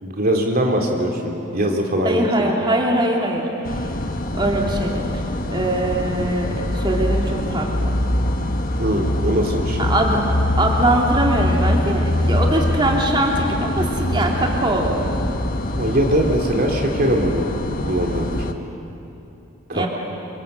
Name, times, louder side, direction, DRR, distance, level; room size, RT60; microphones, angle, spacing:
voice 1, 0.0-2.5 8.8-9.9 15.7-17.4 17.8-18.5 19.7-19.9, right 1 dB, 45° right, 1 dB, 2.8 m, -21 dB
voice 2, 2.0-3.8 4.3-5.2 5.5-8.0 9.8-10.2 10.6-15.0 19.7-19.9, right 1 dB, 25° right, -1 dB, 3.0 m, -22 dB
sound 1, 3.7-18.5, left 1 dB, 45° left, 1.3 m, -23 dB
28.0 x 24.5 x 8.0 m, 2.9 s
head